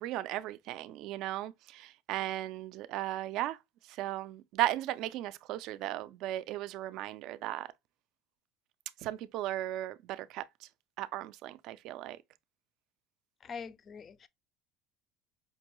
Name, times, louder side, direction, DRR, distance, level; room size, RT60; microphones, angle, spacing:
voice 1, 0.0-3.6 4.0-7.7 9.0-10.4 11.0-12.2, right 15 dB, 55° right, 0.3 m, -36 dB
voice 2, 13.4-14.3, left 6 dB, 30° left, 0.3 m, -44 dB
5.1 x 2.2 x 3.0 m
cardioid pair, 140°, 0 cm